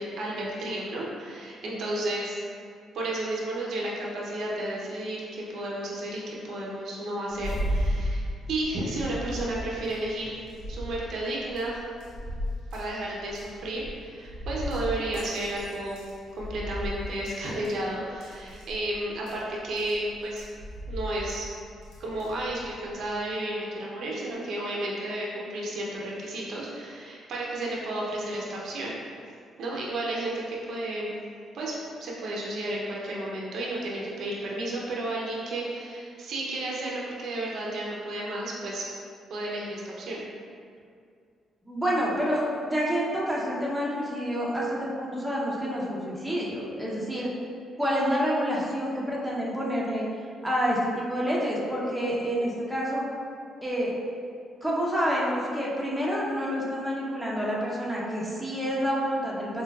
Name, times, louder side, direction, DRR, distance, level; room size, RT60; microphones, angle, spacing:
voice 1, 0.0-2.4 2.9-10.3 10.7-11.8 12.7-16.0 16.4-20.4 20.9-21.5 22.0-29.2 29.6-31.2 31.5-38.9 39.3-40.2, right 1 dB, 70° right, -4 dB, 0.6 m, -32 dB
sound 1, 7.3-23.2, equal, 90° left, 0.6 m, -36 dB
voice 2, 41.6-47.3 47.8-50.1 50.4-53.1 53.6-53.9 54.6-59.6, equal, 5° right, -5 dB, 0.6 m, -28 dB
4.4 x 2.2 x 2.3 m, 2.3 s
cardioid pair, 90°, 0 cm